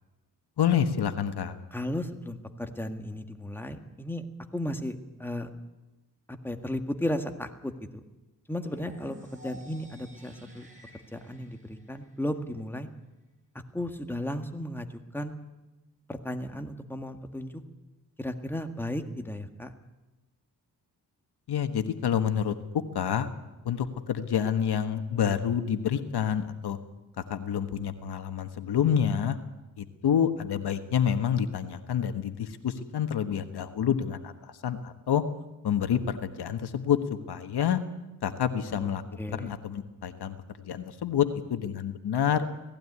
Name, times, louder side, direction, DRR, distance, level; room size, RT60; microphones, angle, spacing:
voice 1, 0.6-1.5 21.5-22.5 22.9-23.3 23.6-26.8 27.3-29.4 29.8-35.2 35.6-37.8 38.2-39.0 39.4-42.5, left 8 dB, 75° left, 9 dB, 1.4 m, -28 dB
voice 2, 1.7-4.2 4.5-5.5 6.3-7.7 8.5-10.7 11.1-12.9 13.7-14.9 15.1-15.3 16.1-17.6 18.2-19.7 38.7-38.9 39.2-39.5, left 1 dB, 5° left, 6 dB, 1.8 m, -34 dB
sound 1, 8.6-12.6, equal, 20° right, 6.6 m, -51 dB
18.0 x 16.0 x 9.6 m, 1.0 s
cardioid pair, 85°, 39 cm